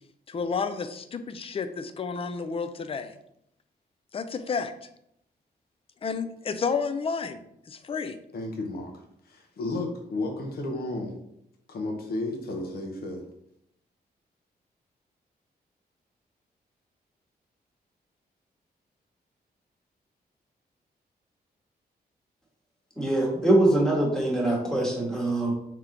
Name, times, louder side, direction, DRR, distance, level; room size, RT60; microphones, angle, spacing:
voice 1, 0.3-3.1 4.1-4.9 6.0-7.4 7.7-8.2, left 5 dB, 35° left, 10 dB, 0.4 m, -31 dB
voice 2, 8.3-8.9 9.2-11.1 11.7-13.2, left 2 dB, 65° left, 2 dB, 0.8 m, -32 dB
voice 3, 23.0-25.5, right 1 dB, 5° left, -3 dB, 1.2 m, -23 dB
3.5 x 2.9 x 3.7 m, 0.75 s
wide cardioid pair, 110°, 17 cm